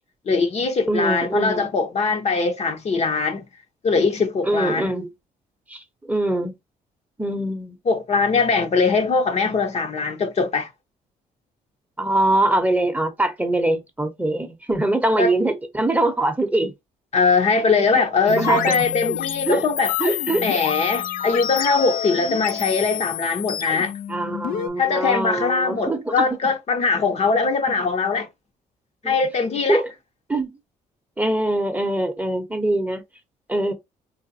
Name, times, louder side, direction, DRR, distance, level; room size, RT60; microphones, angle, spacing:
voice 1, 0.3-3.4 3.8-4.9 7.9-10.7 15.2-15.3 17.1-20.1 20.4-23.9 24.8-28.3 29.0-29.8, left 4 dB, 45° left, 0.8 m, -21 dB
voice 2, 0.9-1.7 4.5-5.1 5.7-5.8 6.1-6.5 7.2-7.8 12.0-16.7 17.9-18.7 19.5-19.6 20.0-20.4 24.1-26.3 29.0-29.1 29.7-29.9 30.3-30.5 31.2-33.0 33.5-33.7, right 1 dB, 10° right, 0.8 m, -23 dB
sound 1, 18.3-24.7, left 10 dB, 60° left, 0.5 m, -28 dB
4.0 x 2.2 x 2.6 m
cardioid pair, 80°, 16 cm